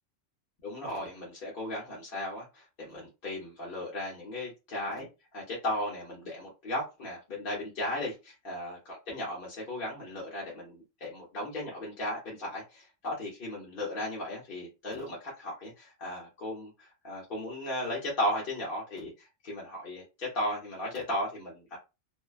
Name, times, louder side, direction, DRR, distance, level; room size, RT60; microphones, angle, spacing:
voice 1, 0.6-5.1 5.3-8.8 9.1-21.8, left 1 dB, 55° left, 0.9 m, -36 dB
2.5 x 2.1 x 2.3 m
omnidirectional pair, 1.2 m